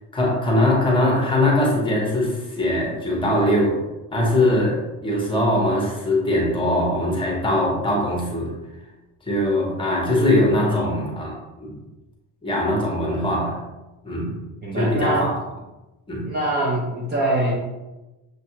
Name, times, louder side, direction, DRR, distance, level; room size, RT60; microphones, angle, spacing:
voice 1, 0.1-3.8 4.1-8.5 9.3-11.8 12.4-13.6 14.0-14.3 14.7-15.3 16.1-16.3, left 1 dB, 15° left, -2 dB, 0.8 m, -21 dB
voice 2, 14.6-15.3 16.2-17.5, right 2 dB, 30° right, -3 dB, 0.5 m, -24 dB
6.2 x 2.3 x 2.8 m, 1.1 s
cardioid pair, 175°, 36 cm